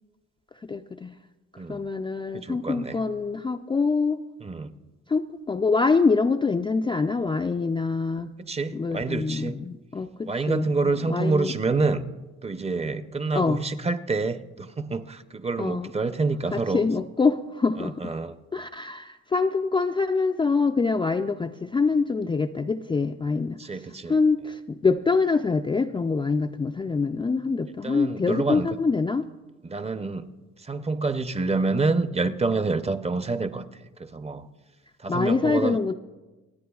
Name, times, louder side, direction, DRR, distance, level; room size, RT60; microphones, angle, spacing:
voice 1, 0.7-1.2 1.7-4.2 5.1-8.3 8.7-11.5 13.4-13.6 15.6-15.9 16.5-18.1 18.5-23.8 24.1-29.3 35.1-35.9, left 4 dB, 15° left, 4 dB, 0.3 m, -25 dB
voice 2, 2.3-3.0 4.4-4.7 8.5-9.5 10.3-12.0 12.4-16.8 17.8-18.4 23.6-24.1 27.8-28.7 29.6-30.3 30.6-33.7 34.0-34.5 35.0-35.8, right 3 dB, 20° right, 11 dB, 0.6 m, -27 dB
27.0 x 9.4 x 2.3 m, 1.2 s
cardioid pair, 90°, 30 cm